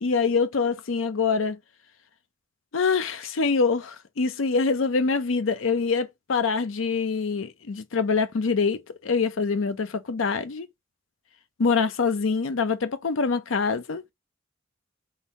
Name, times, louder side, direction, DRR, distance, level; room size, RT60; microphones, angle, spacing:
voice 1, 0.0-1.6 2.7-10.7 11.6-14.0, left 4 dB, 80° left, 0.6 m, -25 dB
3.9 x 2.7 x 4.1 m
head